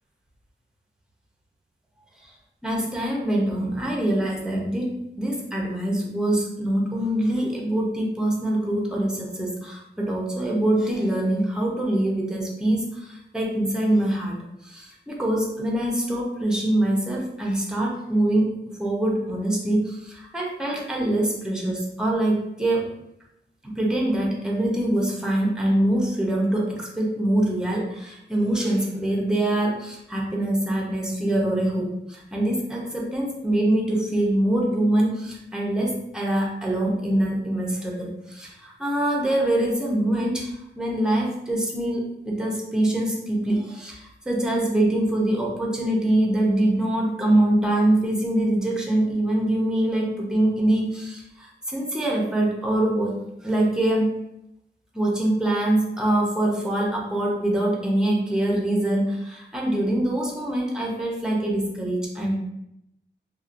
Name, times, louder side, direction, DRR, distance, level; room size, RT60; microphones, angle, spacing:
voice 1, 2.6-4.9 5.2-22.9 23.6-53.2 53.4-54.1 54.9-62.4, right 1 dB, 5° right, -2 dB, 0.5 m, -24 dB
2.7 x 2.1 x 2.4 m, 0.83 s
wide cardioid pair, 125°, 19 cm